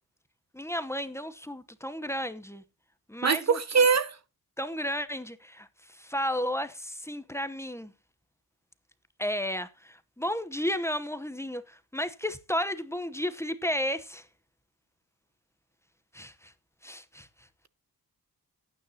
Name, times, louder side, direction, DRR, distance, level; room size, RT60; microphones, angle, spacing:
voice 1, 0.5-2.6 3.1-3.6 4.6-7.9 9.2-14.3 16.1-16.5 16.8-17.5, equal, 5° left, 0.9 m, -33 dB
voice 2, 3.2-4.2, right 5 dB, 45° right, 0.7 m, -23 dB
18.0 x 9.4 x 2.8 m
wide cardioid pair, 135°, 37 cm